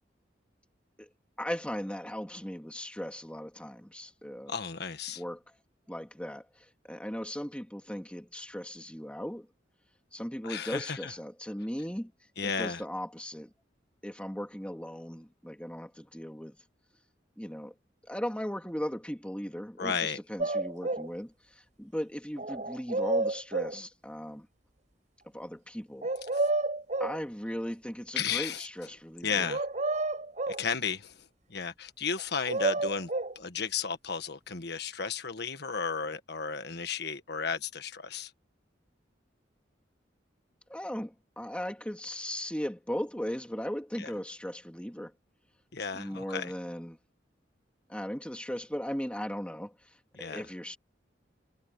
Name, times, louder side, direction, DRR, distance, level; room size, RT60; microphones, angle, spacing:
voice 1, 1.4-4.5 5.2-5.6 5.9-9.5 10.1-12.1 12.4-13.5 14.0-16.6 17.4-17.7 18.0-24.5 25.3-26.1 27.0-29.5 40.7-45.1 45.9-47.0 47.9-50.8, equal, 5° left, 2.6 m, -37 dB
voice 2, 4.5-5.2 10.4-11.1 12.4-12.8 19.8-20.2 26.3-26.5 28.1-28.7 29.2-29.6 30.6-33.1 33.3-38.3 44.0-44.1 45.7-46.5 50.1-50.4, left 6 dB, 65° left, 1.6 m, -34 dB
sound 1, 20.4-21.1 22.4-23.8 26.0-27.2 29.5-30.7 32.2-33.4, right 2 dB, 45° right, 4.7 m, -30 dB
head